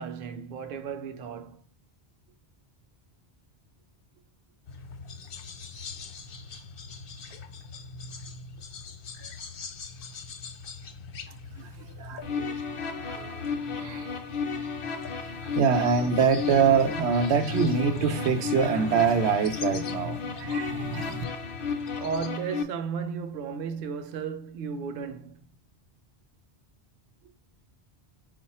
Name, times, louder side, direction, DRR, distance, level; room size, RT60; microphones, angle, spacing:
voice 1, 0.0-1.6 22.0-25.4, right 6 dB, 60° right, 0.7 m, -34 dB
sound 1, 4.7-22.3, left 4 dB, 60° left, 0.8 m, -43 dB
voice 2, 11.3-13.4 13.7-14.2 15.2-21.2, right 6 dB, 90° right, 0.9 m, -26 dB
sound 2, 12.2-22.6, left 5 dB, 45° left, 0.4 m, -33 dB
4.6 x 2.4 x 4.2 m
omnidirectional pair, 1.1 m